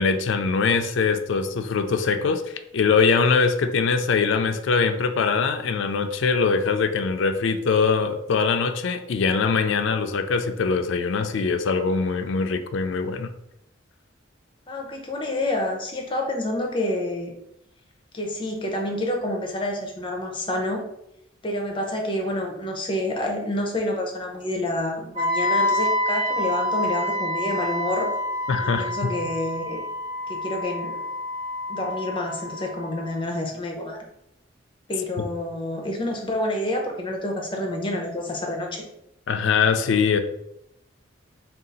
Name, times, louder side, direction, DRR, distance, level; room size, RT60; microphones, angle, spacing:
voice 1, 0.0-2.4 2.7-13.3 28.5-28.9 39.3-40.2, left 5 dB, 70° left, 7 dB, 0.4 m, -22 dB
voice 2, 14.7-17.3 18.1-20.8 21.4-28.1 28.6-29.8 30.3-31.0 31.7-34.0 34.9-38.8, left 1 dB, 25° left, 1 dB, 0.6 m, -28 dB
Wind instrument woodwind instrument, 25.2-33.1, left 1 dB, 20° right, 0.7 m, -27 dB
3.7 x 2.4 x 3.9 m, 0.80 s
head